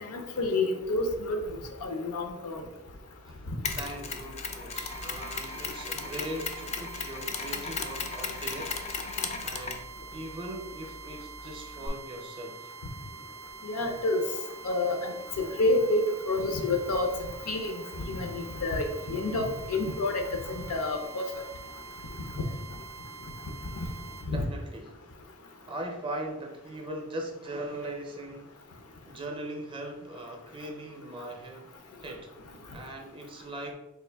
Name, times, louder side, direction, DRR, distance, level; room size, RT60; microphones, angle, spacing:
voice 1, 0.0-1.4 1.8-2.6 13.6-14.2 14.6-17.1 17.5-21.3 23.8-23.9 24.3-24.5, left 2 dB, 85° left, 5 dB, 0.6 m, -29 dB
Mechanisms, 3.6-11.9, left 5 dB, 30° left, 0.3 m, -37 dB
voice 2, 3.8-8.8 9.4-12.7 24.3-25.0 25.7-28.5 29.1-31.7 32.0-32.3 32.7-33.7, right 1 dB, 25° right, 3 dB, 0.5 m, -40 dB
sound 1, 4.7-24.3, right 5 dB, 80° right, 0.3 m, -46 dB
3.6 x 2.5 x 3.3 m, 1.0 s
head